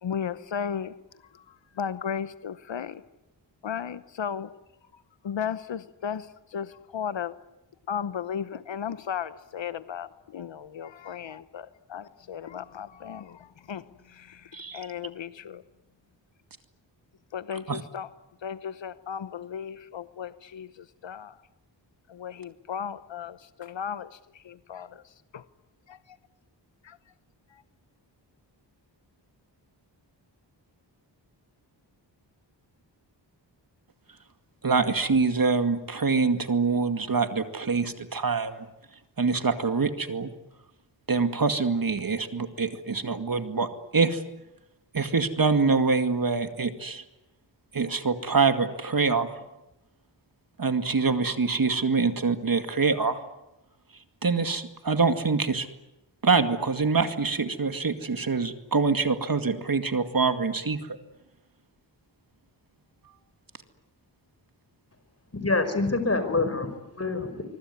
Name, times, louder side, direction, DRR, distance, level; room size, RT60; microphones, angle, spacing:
voice 1, 0.0-0.9 1.3-3.0 3.6-4.5 4.9-7.3 7.9-15.6 17.3-18.1 18.4-21.4 22.1-25.4 25.9-26.2 26.8-27.0 27.5-27.6, left 7 dB, 80° left, 14 dB, 1.0 m, -35 dB
voice 2, 34.6-38.7 39.2-40.3 41.1-44.2 44.9-47.0 47.7-49.3 50.6-53.2 54.2-55.7 56.2-61.0, right 4 dB, 50° right, 8 dB, 2.3 m, -25 dB
voice 3, 65.3-67.4, left 3 dB, 35° left, 10 dB, 5.2 m, -26 dB
25.0 x 23.5 x 9.6 m, 0.92 s
wide cardioid pair, 70°, 44 cm